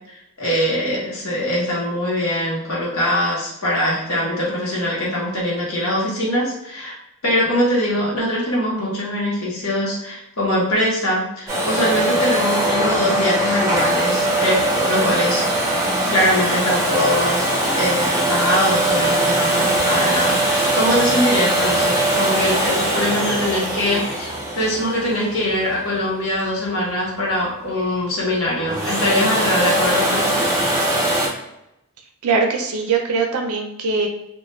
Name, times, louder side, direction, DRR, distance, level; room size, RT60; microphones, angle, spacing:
voice 1, 0.1-7.0 7.2-15.4 16.1-30.5, left 1 dB, 65° left, -4 dB, 1.0 m, -22 dB
Domestic sounds home sounds, 11.5-26.2 28.5-31.3, right 1 dB, 15° right, 0.6 m, -21 dB
voice 2, 32.2-34.1, right 4 dB, 80° right, 3 dB, 0.5 m, -21 dB
2.4 x 2.2 x 3.1 m, 0.87 s
head